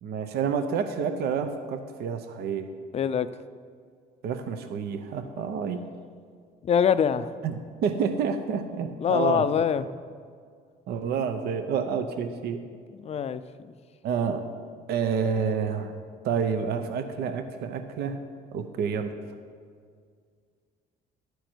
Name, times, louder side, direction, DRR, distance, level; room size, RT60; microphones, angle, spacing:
voice 1, 0.0-2.7 4.2-5.8 7.4-9.4 10.9-12.6 14.0-14.5 14.9-15.9 16.2-18.2 18.5-19.1, right 6 dB, 70° right, 8 dB, 0.7 m, -29 dB
voice 2, 2.9-3.3 6.6-7.3 9.0-9.9 12.9-13.7, left 8 dB, 40° left, 13 dB, 0.5 m, -24 dB
12.0 x 9.3 x 4.5 m, 2.1 s
cardioid pair, 110°, 17 cm